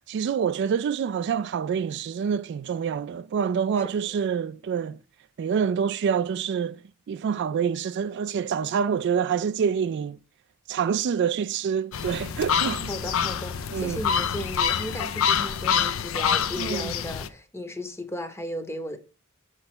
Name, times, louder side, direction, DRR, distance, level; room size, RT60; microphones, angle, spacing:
voice 1, 0.1-5.0 5.4-6.8 7.1-10.2 10.7-12.9 13.7-14.0 16.6-16.9, right 7 dB, 55° right, 0.3 m, -26 dB
sound 1, 11.9-17.3, left 7 dB, 70° left, 0.5 m, -26 dB
voice 2, 12.9-19.0, equal, 10° left, 0.8 m, -35 dB
6.8 x 3.2 x 6.0 m
head